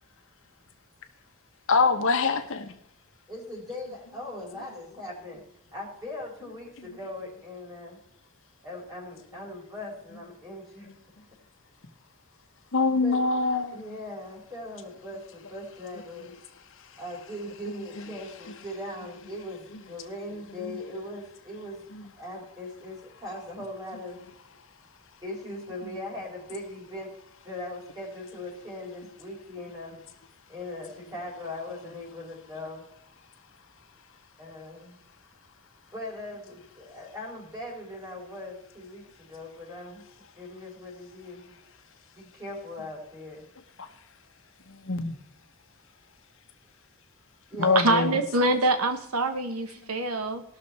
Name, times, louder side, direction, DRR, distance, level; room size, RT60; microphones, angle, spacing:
voice 1, 1.7-2.7 10.8-10.9 12.7-13.8 16.2-16.4 17.7-18.1 19.7-19.8 20.6-21.0 21.9-22.1 43.8-43.9 44.7-45.2 47.6-48.2 49.8-49.9, left 4 dB, 65° left, 6 dB, 1.1 m, -26 dB
voice 2, 3.3-5.4 5.7-8.0 8.6-10.9 12.9-13.2 13.7-16.3 17.0-21.9 22.2-24.2 25.2-27.1 27.4-30.0 30.5-32.8 34.4-35.0 35.9-40.0 40.4-41.5 42.1-43.4 47.5-48.1, left 1 dB, 20° right, -2 dB, 4.2 m, -40 dB
voice 3, 47.7-50.4, right 2 dB, 85° right, 8 dB, 1.1 m, -25 dB
18.5 x 6.6 x 4.3 m, 0.74 s
head